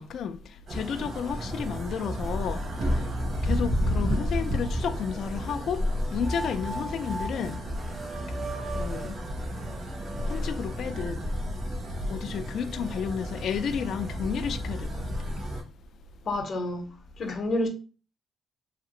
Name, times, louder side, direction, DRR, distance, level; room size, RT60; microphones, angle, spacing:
voice 1, 0.0-7.7 8.3-8.4 8.7-9.2 10.2-11.3 12.1-15.1 17.2-17.5, left 7 dB, 65° left, 0.3 m, -32 dB
sound 1, 0.7-15.6, equal, 55° right, 1.0 m, -31 dB
sound 2, 1.1-1.2 1.7-2.6 3.3-3.4 4.5-5.6 6.2-11.1, right 2 dB, 35° right, 0.5 m, -41 dB
voice 2, 16.3-16.9 17.2-17.7, left 1 dB, 50° left, 0.7 m, -28 dB
2.8 x 2.5 x 2.9 m
cardioid pair, 90°, 0 cm